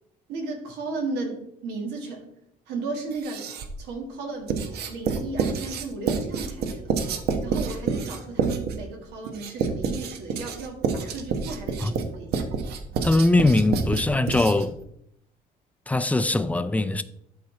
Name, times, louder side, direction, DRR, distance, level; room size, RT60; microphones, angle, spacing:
voice 1, 0.3-2.3 2.7-3.5 3.8-4.6 4.9-6.9 7.4-12.4, right 3 dB, 85° right, 2.0 m, -34 dB
Writing, 3.1-3.8 4.5-14.8, right 5 dB, 70° right, 1.0 m, -28 dB
voice 2, 13.0-14.7 15.9-17.0, left 2 dB, 10° left, 0.4 m, -21 dB
11.5 x 4.4 x 3.3 m
cardioid pair, 110°, 17 cm